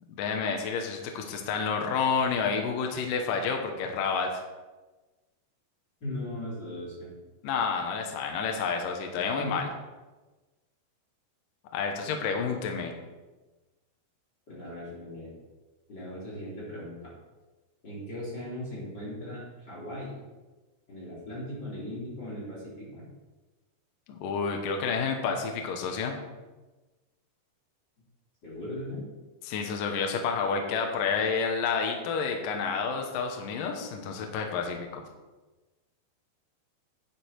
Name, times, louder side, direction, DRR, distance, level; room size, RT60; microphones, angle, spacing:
voice 1, 0.1-4.3 7.4-9.7 11.7-12.9 24.1-26.1 29.4-35.0, left 5 dB, 70° left, 3 dB, 2.5 m, -29 dB
voice 2, 6.0-7.1 9.3-9.7 14.5-15.3 15.9-17.1 17.8-20.2 20.9-23.0 28.4-29.0, left 1 dB, 25° left, -8 dB, 4.3 m, -38 dB
11.5 x 7.6 x 4.6 m, 1.2 s
omnidirectional pair, 4.5 m